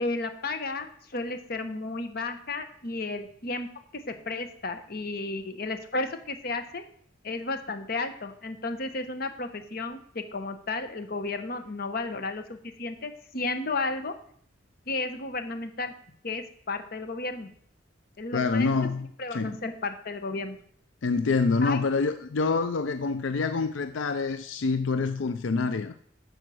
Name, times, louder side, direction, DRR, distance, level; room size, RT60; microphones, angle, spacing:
voice 1, 0.0-3.7 4.1-6.8 7.2-14.1 14.9-15.9 16.2-17.5 18.2-18.7 19.2-20.6 21.6-21.8, left 3 dB, 50° left, 8 dB, 1.0 m, -33 dB
voice 2, 18.3-19.6 21.0-25.9, left 4 dB, 85° left, 10 dB, 0.5 m, -26 dB
9.1 x 6.3 x 6.2 m, 0.63 s
head